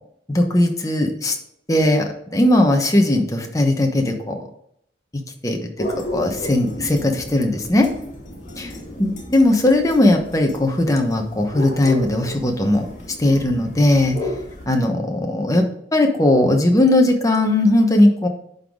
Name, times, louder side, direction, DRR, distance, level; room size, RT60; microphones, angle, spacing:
voice 1, 0.3-1.4 1.7-4.4 5.1-7.9 9.0-12.9 13.2-14.2 14.7-15.6 15.9-18.3, left 1 dB, 20° left, 3 dB, 1.0 m, -18 dB
sound 1, 5.8-14.7, left 1 dB, 45° left, 2.0 m, -33 dB
11.0 x 4.0 x 3.7 m, 0.72 s
head